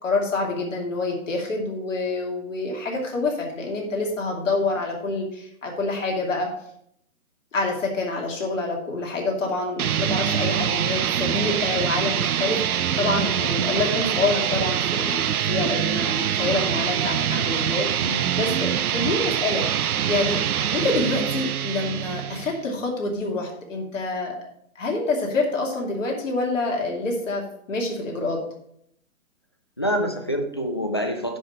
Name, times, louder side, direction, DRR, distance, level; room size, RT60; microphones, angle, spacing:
voice 1, 0.0-6.5 7.5-20.4 20.7-24.4 24.8-27.4 27.7-28.4, left 3 dB, 60° left, 0 dB, 2.7 m, -27 dB
sound 1, 9.8-22.6, right 9 dB, 85° right, 0.6 m, -24 dB
voice 2, 18.0-18.3 29.8-31.4, equal, 20° left, 6 dB, 0.4 m, -26 dB
10.5 x 3.7 x 7.0 m, 0.70 s
figure-of-eight pair, 140°, 43 cm